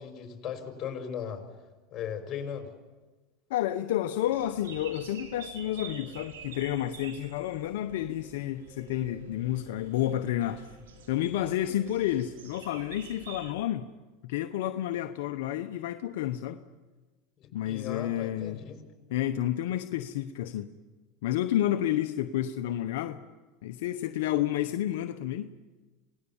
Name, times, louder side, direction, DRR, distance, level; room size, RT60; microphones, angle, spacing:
voice 1, 0.0-1.4 1.9-2.7 17.4-18.8, left 8 dB, 40° left, 4 dB, 5.2 m, -37 dB
voice 2, 3.5-10.6 11.1-13.8 14.2-16.6 17.5-18.6 19.1-20.7 21.2-23.2 23.6-25.5, left 12 dB, 75° left, 7 dB, 1.0 m, -30 dB
sound 1, 4.2-13.5, right 5 dB, 90° right, 4.3 m, -48 dB
27.5 x 18.5 x 7.2 m, 1.2 s
supercardioid pair, 110°, 0 cm